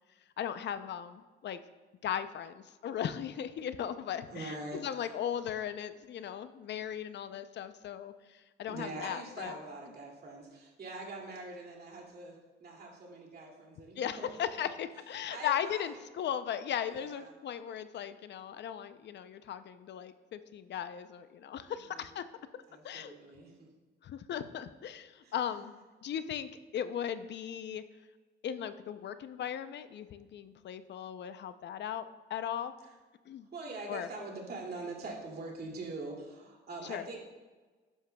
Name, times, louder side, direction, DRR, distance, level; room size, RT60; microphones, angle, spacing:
voice 1, 0.4-1.6 2.0-9.5 14.0-22.2 22.8-23.2 24.0-25.7 26.0-27.8 28.4-32.0 32.3-32.7 33.3-33.5 33.9-34.1 36.8-37.0, left 9 dB, 60° left, 11 dB, 0.5 m, -37 dB
voice 2, 4.3-5.2 8.7-14.7 15.3-16.1 16.9-17.3 21.6-22.1 22.7-23.7 25.2-25.4 32.8-33.0 33.5-37.2, right 2 dB, 55° right, 0 dB, 2.4 m, -44 dB
12.0 x 10.0 x 2.3 m, 1.3 s
cardioid pair, 90°, 20 cm